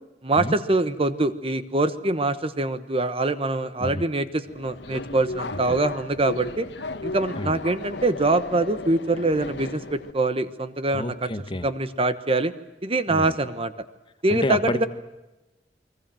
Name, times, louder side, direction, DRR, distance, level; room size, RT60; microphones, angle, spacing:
voice 1, 0.2-6.7 7.0-11.3 11.6-12.5 12.8-13.7 14.2-14.9, right 2 dB, 30° right, 12 dB, 1.1 m, -24 dB
Subway metro underground, 4.5-10.1, left 2 dB, 70° left, 1.4 m, -35 dB
voice 2, 10.9-11.7 13.1-13.3 14.3-14.9, left 1 dB, 30° left, 9 dB, 1.6 m, -29 dB
29.5 x 22.0 x 7.7 m, 1.0 s
head